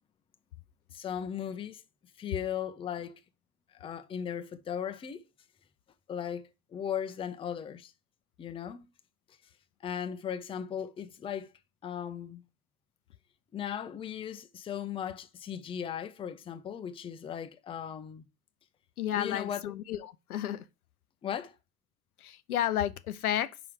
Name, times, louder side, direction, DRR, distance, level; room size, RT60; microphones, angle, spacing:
voice 1, 0.9-1.8 2.2-3.2 3.7-5.2 6.1-7.9 8.4-8.8 9.8-11.5 11.8-12.4 13.5-18.2 19.1-19.7 21.2-21.5, left 8 dB, 15° left, 0.5 m, -37 dB
voice 2, 19.0-20.7 22.2-23.6, left 11 dB, 80° left, 0.6 m, -32 dB
5.7 x 4.8 x 4.7 m
figure-of-eight pair, 70°, 44 cm